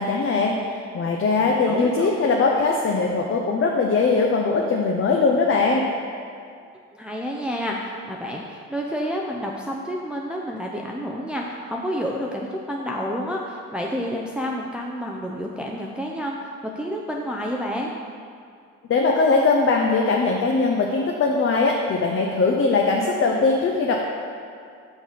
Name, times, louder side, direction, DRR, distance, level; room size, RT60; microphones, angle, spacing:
voice 1, 0.0-5.8 18.9-24.0, left 3 dB, 45° left, 0 dB, 0.7 m, -21 dB
voice 2, 1.4-2.1 6.9-17.9, equal, 5° right, -2 dB, 0.6 m, -29 dB
6.3 x 5.5 x 5.0 m, 2.3 s
cardioid pair, 90°, 30 cm